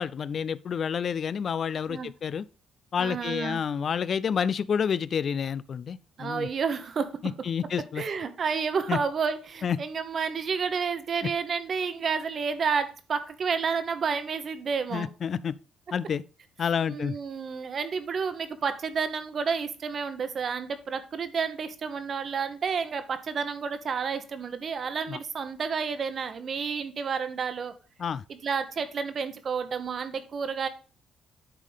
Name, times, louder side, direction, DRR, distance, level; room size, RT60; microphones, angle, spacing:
voice 1, 0.0-2.4 2.9-6.5 7.4-8.0 8.9-9.0 9.6-9.8 14.9-15.5 15.9-16.2 16.6-17.2 25.1-25.2 28.0-28.2, left 7 dB, 50° left, 0.3 m, -29 dB
voice 2, 3.0-3.6 6.2-7.2 8.0-15.1 16.9-27.7 28.3-30.7, right 6 dB, 50° right, 1.0 m, -30 dB
9.9 x 3.7 x 5.0 m
cardioid pair, 90°, 0 cm